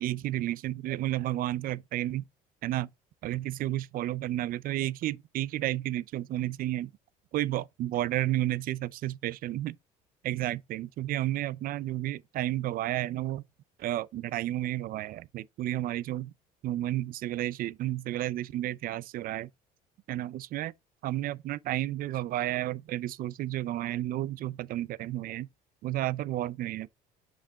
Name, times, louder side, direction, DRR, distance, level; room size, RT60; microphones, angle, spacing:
voice 1, 0.0-2.2 2.6-2.9 3.2-6.9 7.3-9.8 10.2-13.4 13.8-16.3 16.6-19.5 20.1-20.7 21.0-25.5 25.8-26.9, right 14 dB, 55° right, 0.5 m, -32 dB
5.6 x 5.0 x 3.5 m
supercardioid pair, 90°, 17 cm